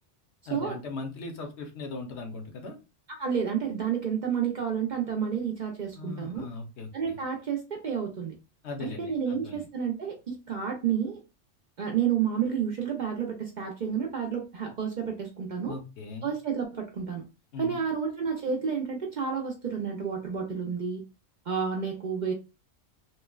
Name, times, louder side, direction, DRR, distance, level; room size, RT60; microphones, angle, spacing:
voice 1, 0.5-2.8 5.9-7.2 8.6-9.6 15.7-16.3 17.5-17.8, left 3 dB, 70° left, 3 dB, 1.0 m, -39 dB
voice 2, 3.2-6.5 6.9-8.3 8.8-11.2 11.8-15.8 16.2-17.2 17.6-21.0 21.5-22.3, right 7 dB, 55° right, 1 dB, 0.5 m, -30 dB
3.1 x 2.0 x 2.2 m, 0.29 s
omnidirectional pair, 1.2 m